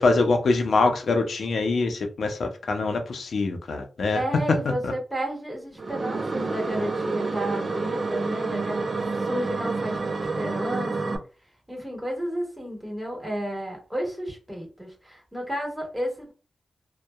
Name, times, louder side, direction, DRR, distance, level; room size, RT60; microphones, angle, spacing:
voice 1, 0.0-4.2 4.8-4.9, left 3 dB, 75° left, 0.5 m, -24 dB
voice 2, 4.1-11.1 11.7-16.3, right 1 dB, 5° right, 1.4 m, -32 dB
sound 1, 5.8-11.2, right 3 dB, 50° right, 0.5 m, -28 dB
2.7 x 2.2 x 2.2 m
cardioid pair, 65°, 0 cm